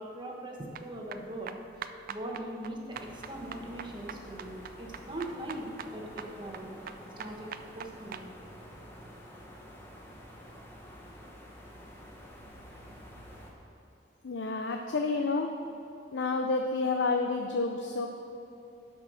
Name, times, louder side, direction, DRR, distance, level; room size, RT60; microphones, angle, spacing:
voice 1, 0.0-1.6 2.1-6.7 7.2-8.3, right 1 dB, 25° right, -1 dB, 1.2 m, -41 dB
sound 1, 0.7-8.3, right 7 dB, 50° right, 0.4 m, -44 dB
sound 2, 2.9-13.5, equal, 15° left, 1.2 m, -49 dB
voice 2, 14.2-15.5 16.1-18.1, left 3 dB, 75° left, 4 dB, 0.5 m, -29 dB
10.5 x 5.3 x 6.3 m, 2.8 s
head